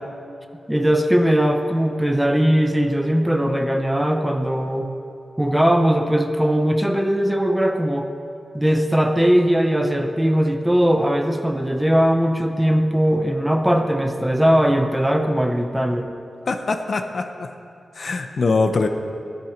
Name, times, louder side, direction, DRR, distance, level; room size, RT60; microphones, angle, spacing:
voice 1, 0.7-4.9 5.4-8.1 8.5-16.1, equal, 5° right, 5 dB, 0.8 m, -19 dB
voice 2, 16.5-17.5 18.0-18.9, left 3 dB, 50° left, 6 dB, 0.8 m, -22 dB
16.5 x 11.0 x 5.1 m, 2.6 s
wide cardioid pair, 145°, 0 cm